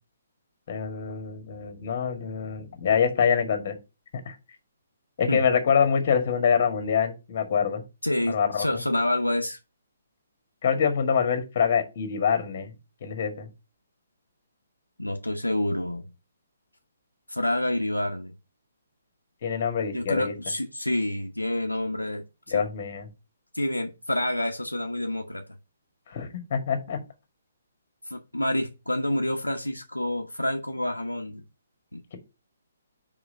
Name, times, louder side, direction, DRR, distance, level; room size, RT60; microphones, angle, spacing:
voice 1, 0.7-3.8 4.3-4.4 5.2-7.8 8.3-8.7 10.6-12.7 13.0-13.5 19.4-20.3 22.5-23.1 26.1-27.0, left 7 dB, 45° left, 7 dB, 1.9 m, -25 dB
voice 2, 8.0-9.6 15.0-16.0 17.3-18.3 19.9-22.7 23.5-25.4 28.1-31.4 31.9-32.0, left 1 dB, 90° left, 2 dB, 1.1 m, -28 dB
4.9 x 4.9 x 6.2 m, 0.27 s
figure-of-eight pair, 135°, 0 cm